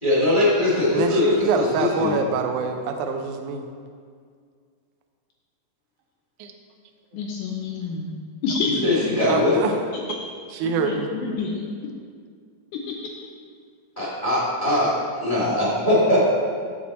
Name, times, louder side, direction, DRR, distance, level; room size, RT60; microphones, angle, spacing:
voice 1, 0.0-2.1 8.8-9.6 14.0-16.3, left 1 dB, 45° left, -9 dB, 0.6 m, -21 dB
voice 2, 0.9-3.7 6.4-6.5 9.3-9.7 10.6-11.1, right 5 dB, 85° right, 4 dB, 1.7 m, -25 dB
voice 3, 7.1-8.2 8.4-9.6 9.9-10.2 10.6-11.7 12.7-13.1 14.0-14.1, left 4 dB, 85° left, 1 dB, 1.8 m, -29 dB
7.6 x 7.2 x 4.2 m, 2.1 s
omnidirectional pair, 4.2 m